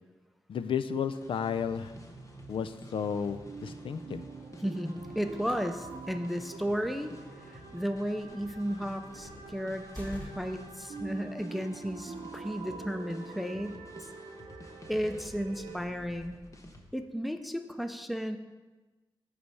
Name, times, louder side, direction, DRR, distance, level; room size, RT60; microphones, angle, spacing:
voice 1, 0.5-1.9 2.5-4.3, left 7 dB, 70° left, 12 dB, 0.4 m, -33 dB
sound 1, 1.1-16.8, left 1 dB, 35° left, 1.0 m, -52 dB
sound 2, 1.3-15.8, right 4 dB, 70° right, 0.7 m, -46 dB
voice 2, 4.6-7.2 7.4-14.1 14.9-16.4 16.9-18.4, equal, ahead, 7 dB, 0.5 m, -34 dB
sound 3, 5.4-10.7, right 1 dB, 20° left, 2.0 m, -50 dB
8.1 x 3.3 x 6.2 m, 1.2 s
cardioid pair, 70°, 9 cm